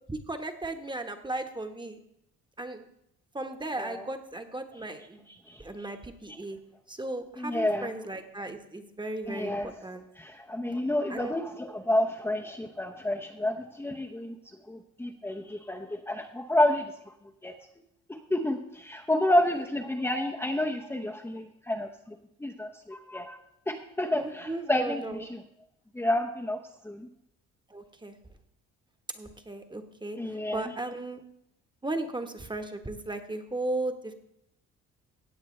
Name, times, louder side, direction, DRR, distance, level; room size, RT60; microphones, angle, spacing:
voice 1, 0.1-2.0 2.6-2.9 3.3-5.2 5.6-6.6 6.9-10.0 11.1-11.3 24.1-25.2 27.7-28.2 29.1-30.2 30.5-31.2 31.8-34.1, right 2 dB, 15° right, 6 dB, 1.3 m, -36 dB
voice 2, 5.3-5.9 7.4-7.9 9.3-9.7 10.2-14.4 14.7-16.9 17.4-17.5 18.3-21.9 22.4-23.4 23.7-25.4 25.9-26.6 26.8-27.1 30.2-30.7, left 1 dB, 10° left, 1 dB, 0.8 m, -29 dB
16.5 x 8.3 x 3.3 m, 0.77 s
cardioid pair, 90°, 30 cm